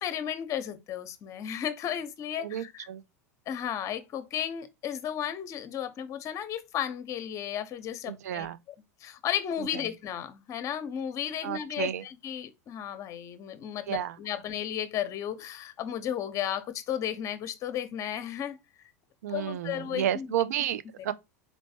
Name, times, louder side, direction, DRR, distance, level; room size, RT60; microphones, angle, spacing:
voice 1, 0.0-2.9 3.5-8.5 9.0-18.6 19.3-20.3, left 10 dB, 40° left, 0.8 m, -34 dB
voice 2, 2.4-3.0 8.1-8.6 9.6-9.8 11.4-12.0 13.9-14.2 19.2-21.1, right 10 dB, 75° right, 0.4 m, -32 dB
4.2 x 3.1 x 2.7 m
hypercardioid pair, 95°, 9 cm